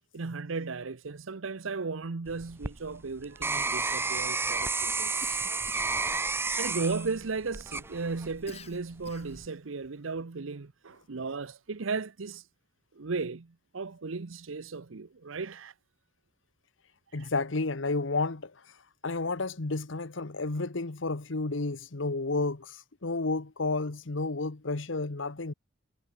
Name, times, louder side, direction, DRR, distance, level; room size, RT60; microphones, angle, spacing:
voice 1, 0.1-5.2 6.6-12.4 12.9-15.7 17.2-17.3, right 4 dB, 85° right, 0.8 m, -35 dB
sound 1, 2.3-8.5 9.0-9.5, right 4 dB, 10° right, 0.6 m, -31 dB
Cough, 5.2-6.0 6.5-7.1 8.5-9.5, left 4 dB, 30° left, 2.4 m, -50 dB
voice 2, 17.1-18.5 19.0-25.5, left 3 dB, 70° left, 1.2 m, -31 dB
head